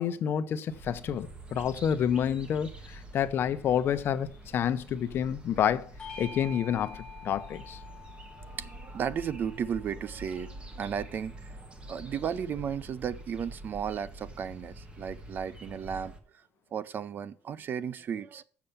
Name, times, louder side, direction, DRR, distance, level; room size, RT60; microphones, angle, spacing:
voice 1, 0.0-4.3 4.5-5.9 6.2-7.8, left 9 dB, 45° left, 0.8 m, -29 dB
sound 1, 0.7-16.2, right 1 dB, 20° right, 1.3 m, -46 dB
Bell / Doorbell, 6.0-10.8, left 3 dB, 15° left, 2.1 m, -48 dB
voice 2, 8.4-16.2 16.7-18.4, right 8 dB, 40° right, 0.5 m, -35 dB
7.1 x 6.7 x 7.1 m
cardioid pair, 140°, 5 cm